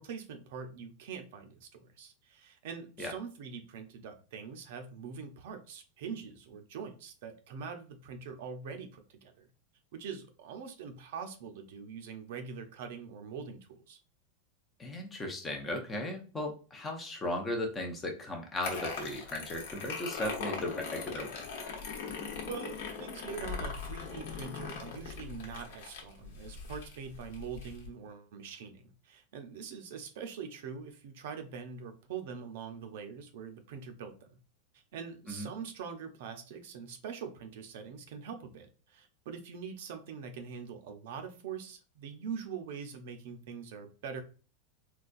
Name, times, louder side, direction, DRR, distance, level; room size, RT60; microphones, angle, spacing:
voice 1, 0.0-9.5 9.9-14.0 22.4-34.3 34.7-44.2, right 6 dB, 60° right, 7 dB, 0.6 m, -43 dB
voice 2, 14.8-21.4 35.3-35.5, left 1 dB, 10° left, 2 dB, 0.5 m, -36 dB
sound 1, 18.6-27.9, left 5 dB, 55° left, 1.0 m, -40 dB
3.9 x 2.3 x 2.5 m, 0.36 s
supercardioid pair, 175°, 0 cm